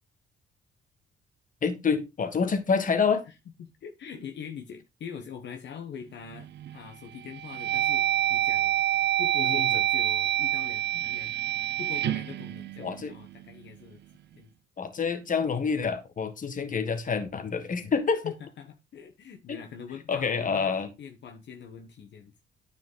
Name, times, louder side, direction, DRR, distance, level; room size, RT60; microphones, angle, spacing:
voice 1, 1.6-3.2 9.4-9.8 12.8-13.1 14.8-18.3 19.5-19.6 20.1-20.9, left 5 dB, 40° left, 1.7 m, -27 dB
voice 2, 3.6-8.8 9.2-11.3 11.8-14.0 14.3-14.5 18.2-20.7 21.0-22.3, left 7 dB, 65° left, 1.3 m, -43 dB
sound 1, 6.3-6.8 7.3-13.4, right 12 dB, 60° right, 0.5 m, -27 dB
9.7 x 5.1 x 3.9 m
cardioid pair, 90°, 20 cm